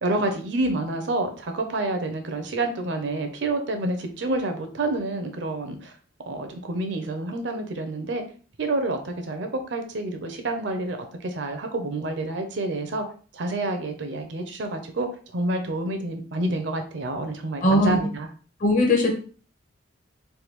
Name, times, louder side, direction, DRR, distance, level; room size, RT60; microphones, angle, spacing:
voice 1, 0.0-5.9 6.3-8.2 8.6-11.0 11.2-13.0 13.3-18.3, right 2 dB, 60° right, 5 dB, 0.5 m, -28 dB
voice 2, 17.6-18.0 18.6-19.2, left 1 dB, 40° left, 0 dB, 0.7 m, -19 dB
3.4 x 2.2 x 2.9 m, 0.40 s
head